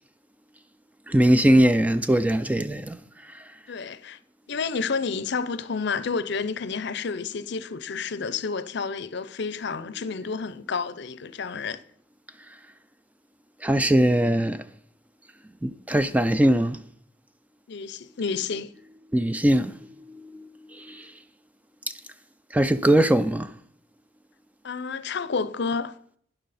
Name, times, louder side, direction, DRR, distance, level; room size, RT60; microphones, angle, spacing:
voice 1, 1.1-3.0 3.3-3.4 13.6-14.6 15.6-16.8 19.1-21.1 22.5-23.5, right 1 dB, 10° right, 0.3 m, -21 dB
voice 2, 3.7-4.2 4.5-11.8 17.7-18.7 24.6-25.9, left 5 dB, 60° left, 0.6 m, -30 dB
12.0 x 10.0 x 4.2 m
head